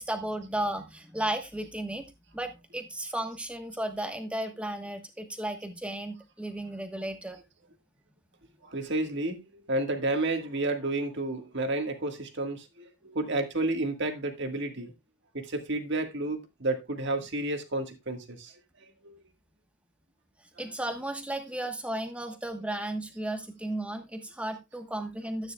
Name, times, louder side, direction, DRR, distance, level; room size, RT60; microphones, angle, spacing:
voice 1, 0.0-2.1 2.3-7.4 20.6-25.5, right 1 dB, 5° right, 1.2 m, -34 dB
voice 2, 8.6-14.9 15.3-18.5 19.0-19.2 20.6-20.7, right 2 dB, 50° right, 1.6 m, -31 dB
13.0 x 9.4 x 2.3 m
head